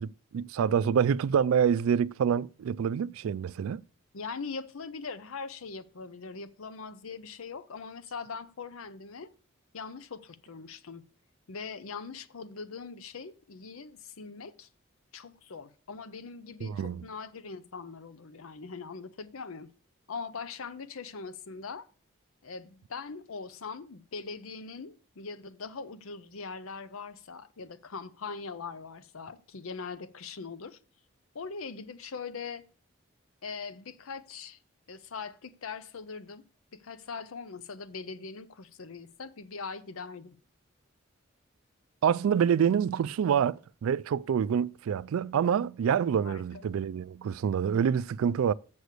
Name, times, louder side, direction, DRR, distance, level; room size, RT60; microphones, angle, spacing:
voice 1, 0.0-3.8 16.6-17.1 42.0-48.5, right 7 dB, 85° right, 0.3 m, -27 dB
voice 2, 4.1-9.3 9.7-11.0 11.5-14.7 15.1-19.7 20.1-21.8 22.4-30.8 31.3-32.6 33.4-34.6 34.9-36.4 36.7-40.4 46.2-46.7, left 5 dB, 85° left, 0.7 m, -41 dB
7.1 x 6.5 x 6.6 m
head